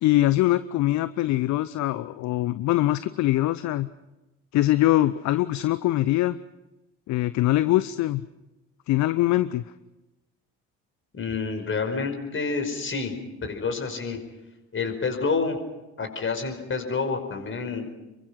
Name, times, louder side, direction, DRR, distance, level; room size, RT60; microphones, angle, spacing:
voice 1, 0.0-3.9 4.5-6.4 7.1-8.3 8.9-9.6, left 15 dB, 50° left, 15 dB, 0.8 m, -23 dB
voice 2, 11.1-13.1 13.4-14.2 14.7-15.6 16.0-17.9, left 4 dB, 35° left, 5 dB, 5.3 m, -28 dB
28.0 x 23.5 x 5.9 m, 1.0 s
figure-of-eight pair, 55°, 37 cm